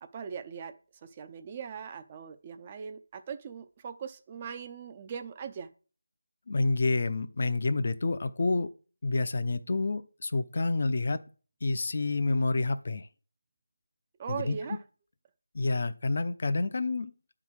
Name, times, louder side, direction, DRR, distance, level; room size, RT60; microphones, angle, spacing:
voice 1, 0.0-5.7 14.2-14.8, right 6 dB, 25° right, 0.6 m, -40 dB
voice 2, 6.5-8.7 9.0-11.2 11.6-13.1 14.3-14.6 15.5-17.1, left 3 dB, 50° left, 0.7 m, -28 dB
9.9 x 3.8 x 6.3 m
figure-of-eight pair, 165°, 0 cm